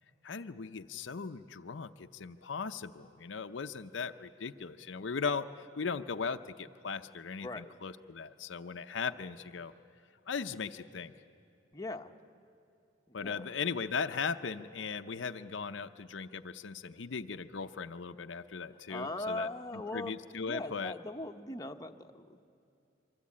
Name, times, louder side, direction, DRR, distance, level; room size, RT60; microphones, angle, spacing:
voice 1, 0.2-9.7 10.3-11.1 13.1-20.9, left 5 dB, 70° left, 8 dB, 0.6 m, -38 dB
voice 2, 7.4-7.7 11.7-12.1 13.1-13.4 18.9-20.1 20.4-22.4, left 2 dB, 20° left, 4 dB, 0.9 m, -40 dB
26.0 x 24.0 x 8.6 m, 2.6 s
head